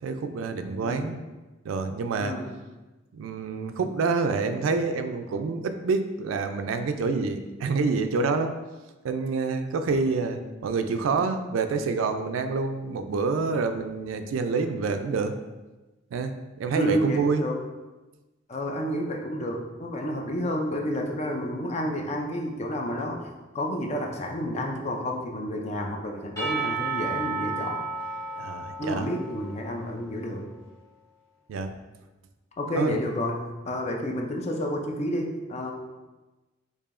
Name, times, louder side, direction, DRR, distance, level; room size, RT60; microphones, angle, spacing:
voice 1, 0.0-1.2 1.6-2.3 3.1-8.5 9.0-15.3 16.1-17.4 28.4-29.1 31.5-31.7 32.7-33.0, right 4 dB, 85° right, 8 dB, 0.3 m, -27 dB
voice 2, 0.8-1.1 2.2-2.5 16.7-17.6 18.5-23.3 23.5-27.8 28.8-30.5 32.6-35.7, equal, 35° left, 2 dB, 0.4 m, -30 dB
Percussion / Church bell, 26.4-30.2, right 4 dB, 15° left, 1.1 m, -33 dB
4.6 x 2.7 x 2.5 m, 1.1 s
head